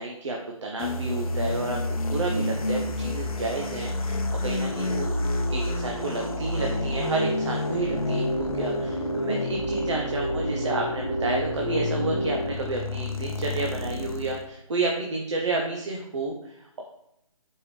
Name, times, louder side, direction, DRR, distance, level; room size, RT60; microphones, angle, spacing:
voice 1, 0.0-5.1 5.5-16.8, right 3 dB, 55° right, 0 dB, 0.6 m, -31 dB
sound 1, 0.8-14.4, left 2 dB, 85° left, 0.6 m, -30 dB
sound 2, 4.4-12.5, right 1 dB, 15° left, 0.8 m, -31 dB
4.4 x 3.4 x 3.1 m, 0.80 s
hypercardioid pair, 170°, 18 cm